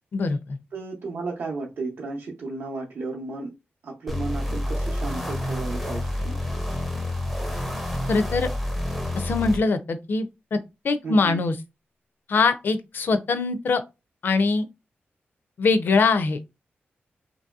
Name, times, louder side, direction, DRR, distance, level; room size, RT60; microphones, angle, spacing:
voice 1, 0.1-0.6 8.1-8.5 9.2-10.6 10.8-11.6 12.3-13.8 14.2-14.7 15.6-16.4, left 4 dB, 55° left, 0.4 m, -22 dB
voice 2, 0.7-3.5 3.8-6.4 11.0-11.4, right 3 dB, 65° right, 0.6 m, -33 dB
sound 1, 4.1-9.6, left 1 dB, ahead, 0.4 m, -28 dB
2.9 x 2.6 x 2.3 m
wide cardioid pair, 165°, 4 cm